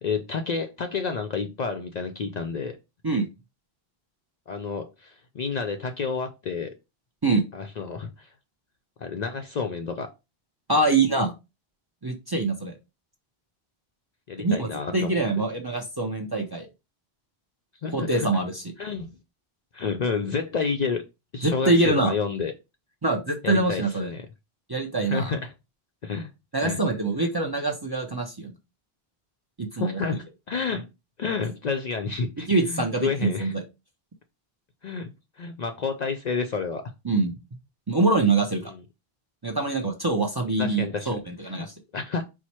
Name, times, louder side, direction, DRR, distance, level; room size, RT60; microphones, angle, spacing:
voice 1, 0.0-2.8 4.5-6.7 7.5-8.3 9.0-10.1 14.3-15.1 17.8-18.3 18.8-19.1 19.7-21.0 21.3-22.5 23.4-24.3 25.0-25.5 26.0-26.3 26.6-26.8 29.7-30.9 31.2-33.5 34.8-36.8 38.6-38.8 40.6-41.1 41.4-42.3, left 5 dB, 55° left, 5 dB, 0.5 m, -30 dB
voice 2, 10.7-11.3 12.0-12.7 14.4-16.7 17.9-18.6 21.4-22.1 23.0-24.1 24.7-25.3 26.5-28.5 29.6-30.0 32.4-33.6 37.0-37.3 37.9-38.7 39.4-41.7, right 3 dB, 30° right, 2 dB, 0.5 m, -24 dB
4.5 x 2.1 x 4.2 m, 0.25 s
omnidirectional pair, 1.0 m